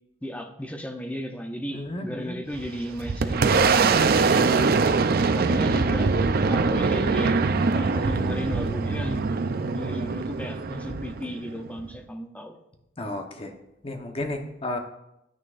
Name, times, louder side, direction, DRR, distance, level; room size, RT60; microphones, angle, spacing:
voice 1, 0.2-4.5 5.3-6.1 6.5-7.4 7.7-9.2 9.7-12.6, equal, 10° left, 5 dB, 0.6 m, -34 dB
voice 2, 1.7-2.4 13.0-13.5 13.8-14.8, left 1 dB, 30° left, 4 dB, 1.0 m, -32 dB
Boom, 2.5-11.9, right 4 dB, 55° right, 0.5 m, -23 dB
10.5 x 9.8 x 2.5 m, 0.87 s
head